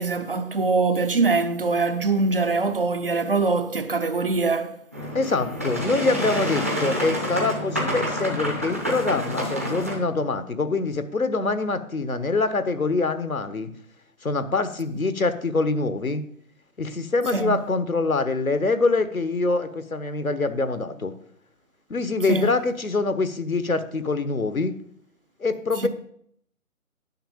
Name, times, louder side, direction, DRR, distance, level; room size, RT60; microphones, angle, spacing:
voice 1, 0.0-4.8 17.3-17.6 22.3-22.5 25.8-25.9, right 3 dB, 40° right, 0.8 m, -23 dB
Boat Water vehicle, 4.9-10.0, equal, 10° right, 0.7 m, -28 dB
voice 2, 5.1-13.7 14.2-16.2 16.8-21.1 21.9-24.7 25.4-25.9, left 3 dB, 75° left, 1.3 m, -25 dB
10.0 x 6.4 x 7.2 m
figure-of-eight pair, 150°, 42 cm